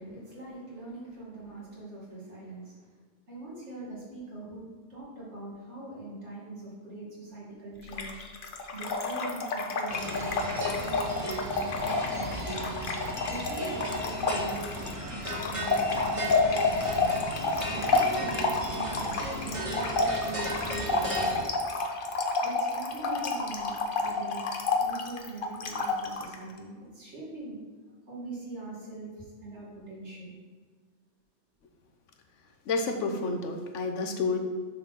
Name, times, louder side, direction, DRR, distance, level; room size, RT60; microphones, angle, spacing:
voice 1, 0.0-2.9 3.3-4.6 4.9-8.2 8.7-12.7 13.3-14.9 15.5-17.1 17.5-21.4 22.4-24.4 24.8-27.6 28.1-30.4, right 2 dB, 70° right, -6 dB, 2.5 m, -42 dB
Trickle dribble / Fill (with liquid), 7.9-26.4, left 3 dB, 50° left, 0.8 m, -29 dB
sound 1, 9.9-21.4, equal, 25° right, 1.5 m, -36 dB
voice 2, 32.7-34.4, left 3 dB, 90° left, 5 dB, 1.2 m, -29 dB
6.4 x 4.0 x 6.2 m, 1.5 s
omnidirectional pair, 1.2 m